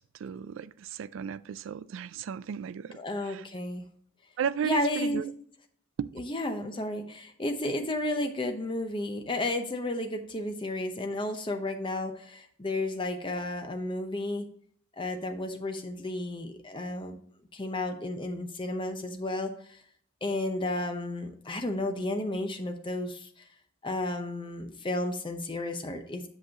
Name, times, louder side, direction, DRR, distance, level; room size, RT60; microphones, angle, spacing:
voice 1, 0.1-3.4 4.4-5.3 6.0-6.1, right 7 dB, 65° right, 0.3 m, -34 dB
voice 2, 2.9-3.8 4.6-5.3 6.2-14.5 14.9-17.2 17.5-19.8 20.2-23.3 23.8-26.3, left 1 dB, 25° left, 0.7 m, -32 dB
7.7 x 6.1 x 2.8 m
head